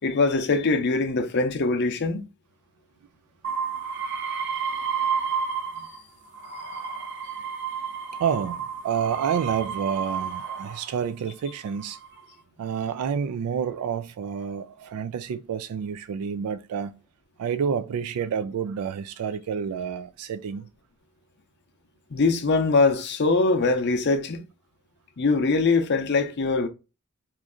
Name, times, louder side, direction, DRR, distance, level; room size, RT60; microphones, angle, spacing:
voice 1, 0.0-2.3 22.1-24.4 25.2-26.7, left 3 dB, 50° left, 0.5 m, -22 dB
sound 1, 3.4-6.0 6.3-10.9 11.6-12.2, right 6 dB, 55° right, 0.7 m, -31 dB
voice 2, 8.2-12.0 12.6-16.9 17.4-20.7, right 7 dB, 85° right, 0.3 m, -29 dB
3.1 x 2.5 x 3.6 m
head